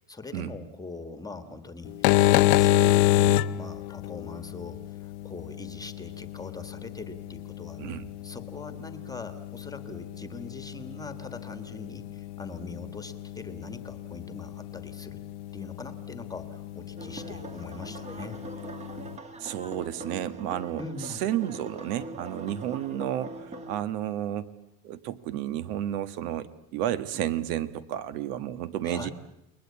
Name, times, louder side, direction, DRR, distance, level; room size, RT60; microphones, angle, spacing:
voice 1, 0.0-8.0 8.2-15.2 15.5-18.4 20.8-21.3 28.8-29.1, left 3 dB, 10° left, 10 dB, 1.4 m, -42 dB
sound 1, 1.9-19.2, left 14 dB, 85° left, 0.9 m, -29 dB
sound 2, 17.0-23.8, right 2 dB, 15° right, 1.2 m, -42 dB
voice 2, 19.4-20.8 21.2-24.5 24.8-29.1, right 11 dB, 75° right, 13 dB, 1.5 m, -31 dB
30.0 x 21.0 x 8.4 m, 0.84 s
cardioid pair, 160°, 44 cm